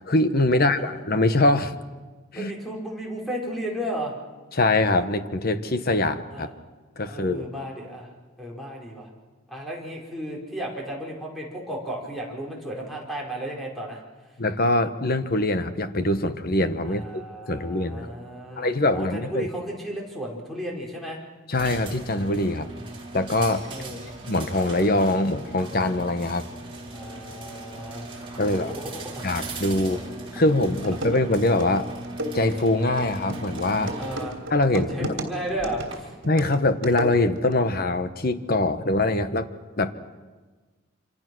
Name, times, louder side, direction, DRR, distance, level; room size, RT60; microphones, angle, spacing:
voice 1, 0.0-1.8 2.3-2.5 4.5-6.5 7.0-7.5 14.4-17.0 17.5-18.1 18.6-19.5 21.5-22.7 23.1-23.6 24.3-26.5 28.4-28.7 29.2-30.0 30.3-31.9 32.3-34.0 34.5-35.1 36.2-39.5 39.8-39.9, left 2 dB, 45° left, 10 dB, 1.2 m, -23 dB
voice 2, 0.5-1.0 2.3-4.1 6.3-6.5 7.1-8.1 8.4-9.1 9.5-14.0 16.8-21.2 23.7-24.0 26.9-29.3 29.8-30.0 34.0-34.4 34.7-36.1, right 1 dB, ahead, -4 dB, 4.7 m, -34 dB
sound 1, 21.5-35.9, right 2 dB, 25° right, 4.6 m, -39 dB
sound 2, 30.4-30.5 30.8-37.5, right 1 dB, 65° right, 3.1 m, -34 dB
26.5 x 26.0 x 6.3 m, 1.3 s
head